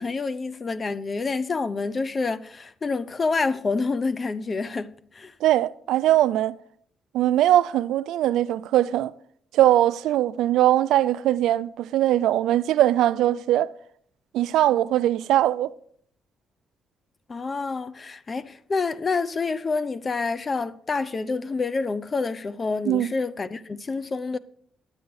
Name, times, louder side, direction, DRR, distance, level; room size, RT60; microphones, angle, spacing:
voice 1, 0.0-5.3 17.3-24.4, left 4 dB, 35° left, 0.6 m, -28 dB
voice 2, 5.4-6.5 7.1-9.1 9.5-13.7 14.3-15.7 22.9-23.1, right 13 dB, 85° right, 0.4 m, -21 dB
10.5 x 9.0 x 4.7 m
cardioid pair, 90°, 0 cm